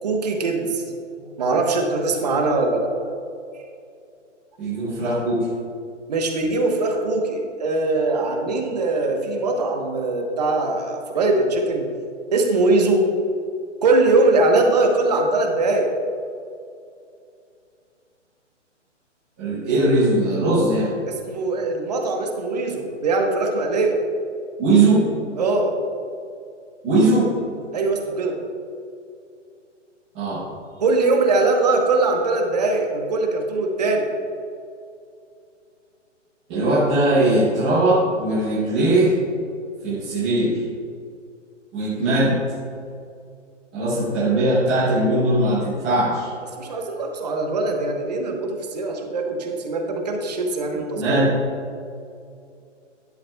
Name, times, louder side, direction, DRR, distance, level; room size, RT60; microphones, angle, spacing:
voice 1, 0.0-0.9 1.2-3.0 6.1-11.9 12.3-13.0 13.8-15.9 21.1-24.0 25.4-25.7 27.7-28.4 30.8-34.1 46.6-51.2, right 3 dB, 35° right, 2 dB, 1.0 m, -21 dB
voice 2, 4.6-5.5 19.4-20.9 24.6-25.1 26.8-27.4 30.1-30.4 36.5-39.2 39.8-40.6 41.7-42.4 43.7-46.3 50.9-51.3, right 2 dB, 5° right, -12 dB, 0.6 m, -19 dB
12.0 x 10.5 x 2.3 m, 2.5 s
hypercardioid pair, 170°, 37 cm